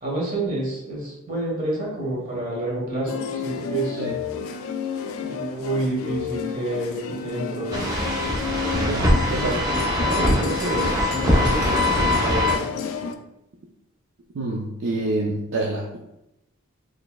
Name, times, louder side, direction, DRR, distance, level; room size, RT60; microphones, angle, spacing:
voice 1, 0.0-4.1 5.3-7.9 9.3-12.6, right 2 dB, 40° right, -4 dB, 1.4 m, -29 dB
sound 1, 3.1-13.1, left 6 dB, 75° left, 0.3 m, -31 dB
sound 2, 7.7-12.5, left 1 dB, 15° right, 0.6 m, -22 dB
voice 2, 8.9-9.6 14.3-15.9, right 2 dB, 60° right, -2 dB, 0.5 m, -27 dB
4.1 x 3.2 x 2.3 m, 0.88 s
head